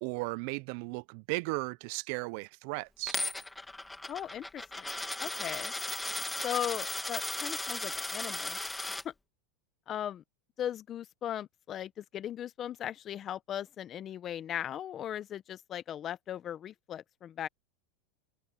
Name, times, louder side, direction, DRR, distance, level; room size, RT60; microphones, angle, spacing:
voice 1, 0.0-3.2, right 28 dB, 60° right, 0.5 m, -36 dB
Coin (dropping), 3.1-9.0, left 2 dB, 5° left, 2.7 m, -36 dB
voice 2, 4.1-4.9 5.2-5.7 6.4-8.6 9.0-9.1 9.9-10.2 10.6-17.5, left 10 dB, 30° left, 0.9 m, -38 dB
supercardioid pair, 130°, 0 cm